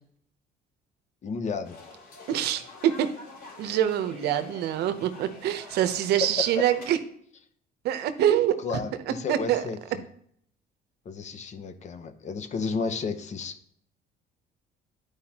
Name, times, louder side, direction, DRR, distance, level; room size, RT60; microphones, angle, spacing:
voice 1, 1.2-1.8 6.2-6.3 6.6-6.7 8.6-10.0 11.0-13.5, left 4 dB, 45° left, 9 dB, 0.8 m, -32 dB
sound 1, 1.6-6.8, left 3 dB, 70° left, 3.2 m, -47 dB
voice 2, 2.3-3.1 3.6-7.0 7.8-8.6 9.1-9.6, right 11 dB, 75° right, 10 dB, 0.8 m, -25 dB
11.5 x 4.8 x 2.9 m, 0.65 s
cardioid pair, 110°, 17 cm